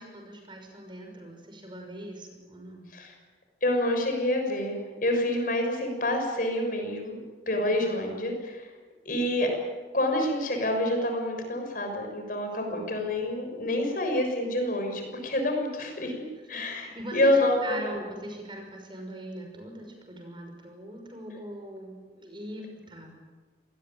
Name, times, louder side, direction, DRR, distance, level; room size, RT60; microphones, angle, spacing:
voice 1, 0.0-2.9 7.8-7.9 12.7-12.9 16.5-17.3 17.6-23.1, right 1 dB, 25° right, 3 dB, 6.0 m, -41 dB
voice 2, 3.6-7.2 7.5-8.7 9.0-9.5 9.9-17.7, left 1 dB, 50° left, 3 dB, 6.4 m, -27 dB
27.0 x 20.0 x 9.1 m, 1.3 s
head